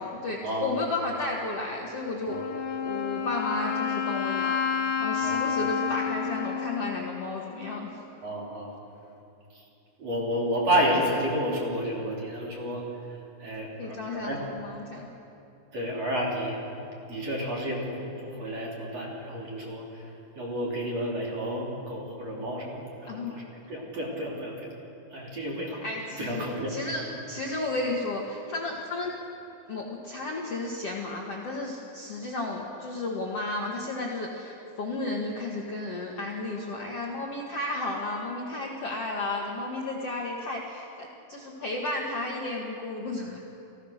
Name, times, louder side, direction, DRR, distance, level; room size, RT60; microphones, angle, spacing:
voice 1, 0.0-2.4 2.8-4.6 5.0-7.9 13.8-15.1 23.1-23.4 25.8-29.1 29.7-43.4, left 2 dB, 80° left, -2 dB, 1.3 m, -33 dB
Wind instrument woodwind instrument, 2.3-8.0, left 7 dB, 65° left, 2.2 m, -30 dB
voice 2, 8.2-8.8 10.0-12.8 13.4-13.7 14.1-14.4 15.7-20.0 20.4-23.4 23.7-24.7 25.1-25.8 26.2-26.7, equal, 35° right, -3 dB, 3.9 m, -30 dB
28.5 x 17.0 x 6.6 m, 2.8 s
omnidirectional pair, 5.7 m